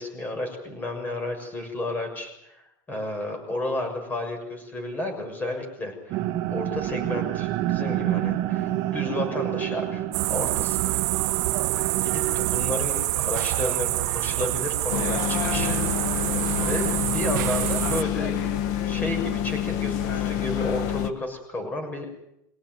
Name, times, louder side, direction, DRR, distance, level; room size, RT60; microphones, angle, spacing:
voice 1, 0.0-2.6 2.9-11.4 11.7-15.8 16.6-18.3 18.8-22.1, left 1 dB, 15° left, 6 dB, 6.6 m, -32 dB
sound 1, 6.1-12.8, right 14 dB, 50° right, 1.7 m, -28 dB
sound 2, 10.1-18.0, right 19 dB, 70° right, 1.0 m, -26 dB
sound 3, 14.9-21.1, left 10 dB, 65° left, 1.8 m, -27 dB
24.5 x 17.5 x 9.3 m, 0.81 s
supercardioid pair, 155°, 10 cm